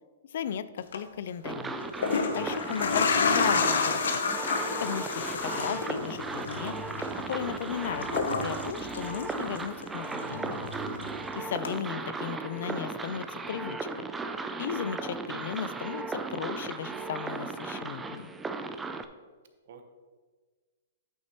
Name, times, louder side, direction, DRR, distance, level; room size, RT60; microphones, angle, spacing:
voice 1, 0.3-1.8 2.3-4.2 4.8-6.7 7.3-10.7 11.4-14.1 14.6-18.3, left 8 dB, 60° left, 15 dB, 0.3 m, -36 dB
sound 1, 0.8-1.0 1.8-9.8 10.1-11.2 11.6-11.7, left 5 dB, 85° left, 0.8 m, -30 dB
sound 2, 1.4-19.1, right 3 dB, 10° right, 0.3 m, -36 dB
voice 2, 10.9-11.5 19.7-19.8, right 6 dB, 60° right, 6 dB, 0.9 m, -55 dB
8.7 x 6.2 x 3.0 m, 1.4 s
hypercardioid pair, 150°, 0 cm